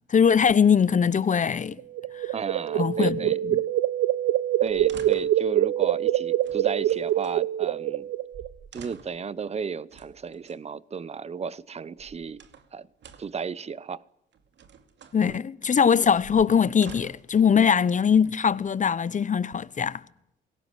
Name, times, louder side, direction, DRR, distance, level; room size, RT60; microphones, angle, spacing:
voice 1, 0.1-1.8 2.1-2.3 2.8-3.6 15.1-20.0, left 7 dB, 40° left, 1.0 m, -21 dB
sound 1, 1.8-8.5, right 13 dB, 85° right, 0.9 m, -25 dB
voice 2, 2.3-3.4 4.6-8.1 8.7-12.5 12.7-12.9 13.2-14.0 15.3-15.4, right 6 dB, 30° right, 0.9 m, -33 dB
sound 2, 4.7-5.5 6.4-7.4 8.0-8.1 8.3-9.3 9.9-10.6 11.7-12.7 13.0-13.4 14.3-15.2 16.0-17.4 18.2-18.9, right 6 dB, 65° right, 2.4 m, -48 dB
22.0 x 18.0 x 10.0 m
cardioid pair, 90°, 20 cm